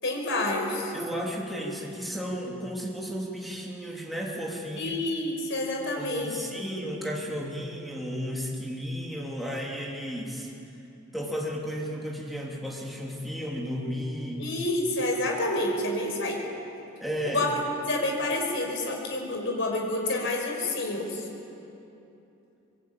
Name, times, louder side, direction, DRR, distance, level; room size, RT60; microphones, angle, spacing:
voice 1, 0.0-0.9 4.8-6.4 14.4-16.4 17.2-21.3, left 1 dB, 60° left, 1 dB, 5.3 m, -28 dB
voice 2, 0.9-5.0 5.9-10.5 11.1-14.5 17.0-17.4, equal, ahead, -2 dB, 3.1 m, -33 dB
26.0 x 22.0 x 8.8 m, 2.8 s
head